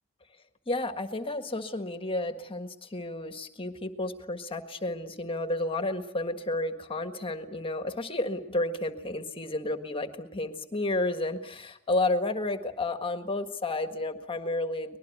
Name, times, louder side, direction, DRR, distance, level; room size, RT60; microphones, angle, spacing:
voice 1, 0.7-15.0, left 2 dB, 25° left, 8 dB, 1.7 m, -31 dB
24.5 x 20.5 x 9.4 m, 0.78 s
head